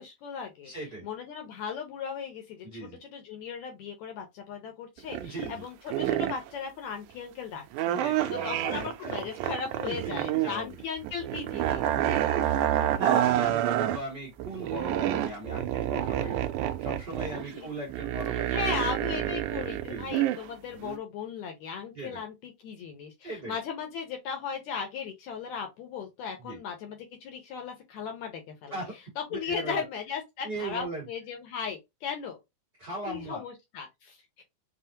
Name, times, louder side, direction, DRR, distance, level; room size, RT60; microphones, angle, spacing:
voice 1, 0.0-0.7 1.0-11.8 17.4-17.7 18.5-28.8 29.2-32.4 33.1-34.4, left 6 dB, 75° left, 1.7 m, -37 dB
voice 2, 0.6-1.1 2.6-3.0 5.2-5.6 8.0-9.5 9.8-10.8 11.9-12.2 12.9-16.5 16.8-19.4 19.8-20.1 21.9-22.2 23.2-23.6 26.4-26.6 28.7-28.9 29.3-29.8 30.4-31.1 32.8-33.4, right 2 dB, 45° right, 1.3 m, -39 dB
sound 1, 5.0-5.6 5.9-6.5 7.7-10.5 10.8-14.0 14.4-20.4 20.8-21.0, right 12 dB, 85° right, 1.8 m, -28 dB
5.5 x 2.1 x 2.7 m
omnidirectional pair, 4.0 m